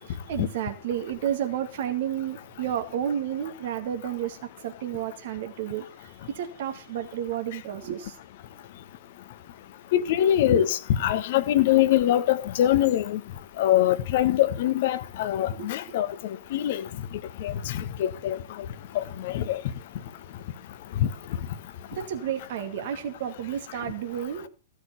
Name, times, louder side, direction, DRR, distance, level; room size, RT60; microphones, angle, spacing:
voice 1, 0.0-8.2 10.5-10.6 15.5-15.7 21.9-24.5, right 10 dB, 50° right, 2.3 m, -31 dB
voice 2, 9.9-13.2 13.6-16.1 16.5-16.9 17.4-18.4 18.9-19.6 21.0-21.1, left 12 dB, 50° left, 1.4 m, -23 dB
16.0 x 6.8 x 7.8 m
figure-of-eight pair, 110°, 0 cm